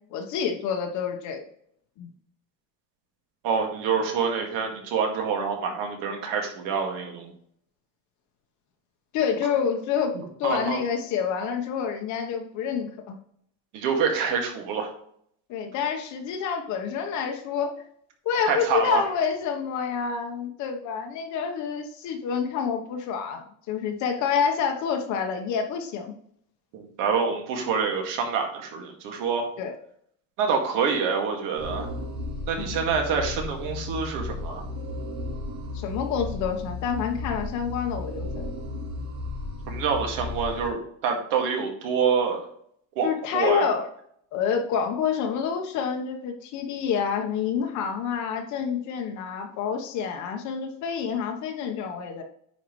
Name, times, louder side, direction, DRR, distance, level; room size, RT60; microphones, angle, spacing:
voice 1, 0.1-1.4 2.0-2.1 9.1-13.2 15.5-17.7 18.2-26.1 29.6-29.7 32.6-32.8 35.7-38.5 43.0-43.9 44.3-52.2, left 7 dB, 50° left, 4 dB, 1.1 m, -28 dB
voice 2, 3.4-7.3 10.4-10.8 13.7-14.9 18.5-19.0 26.7-29.5 30.4-31.9 32.5-34.6 39.7-42.5 43.0-43.7, right 5 dB, 55° right, 2 dB, 2.1 m, -26 dB
sound 1, 31.6-40.7, left 2 dB, 85° right, 3.1 m, -34 dB
9.5 x 5.6 x 3.2 m, 0.66 s
cardioid pair, 165°, 38 cm